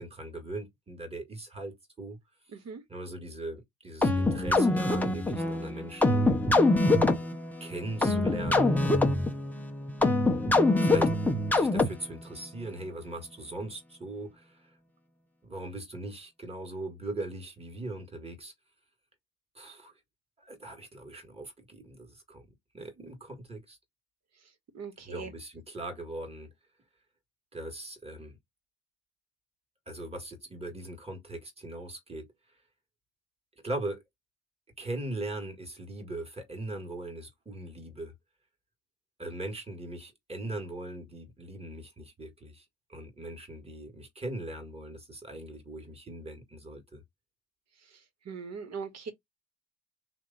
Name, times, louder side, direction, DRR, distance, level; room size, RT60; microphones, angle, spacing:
voice 1, 0.0-2.2 2.9-6.3 7.6-8.8 10.8-11.1 11.5-14.7 15.4-18.5 19.6-19.9 20.4-22.5 22.7-23.8 25.0-26.5 27.5-28.4 29.9-32.3 33.6-34.0 34.8-38.1 39.2-47.0, right 2 dB, 15° right, 1.8 m, -40 dB
voice 2, 2.5-2.8 24.7-25.3 48.2-49.1, right 5 dB, 40° right, 1.6 m, -39 dB
sound 1, 4.0-12.2, left 2 dB, 5° left, 0.8 m, -25 dB
3.3 x 2.9 x 3.9 m
supercardioid pair, 85°, 39 cm